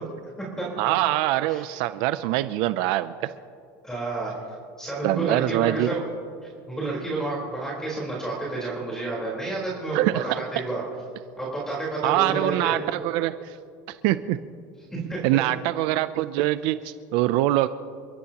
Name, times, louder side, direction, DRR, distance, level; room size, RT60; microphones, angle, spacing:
voice 1, 0.8-3.1 5.0-5.9 9.9-10.4 12.0-13.6 13.9-14.4 15.2-17.7, right 15 dB, 55° right, 13 dB, 0.5 m, -24 dB
voice 2, 3.8-4.3 4.8-6.0 6.7-10.8 11.4-12.8 14.9-15.2, right 2 dB, 5° left, -4 dB, 4.1 m, -30 dB
29.0 x 13.5 x 3.0 m, 2.4 s
supercardioid pair, 150°, 10 cm